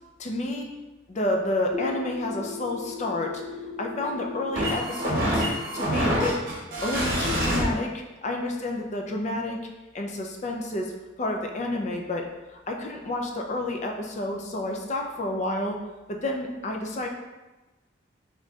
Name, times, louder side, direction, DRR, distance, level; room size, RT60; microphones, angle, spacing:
voice 1, 0.2-0.7 1.1-3.4 3.8-5.4 5.7-6.4 6.8-9.6 9.9-10.9 11.2-12.3 12.7-15.8 16.1-17.1, left 1 dB, 40° left, 2 dB, 0.4 m, -30 dB
sound 1, 1.7-7.6, equal, 50° right, 0.9 m, -28 dB
4.1 x 3.7 x 2.3 m, 1.1 s
head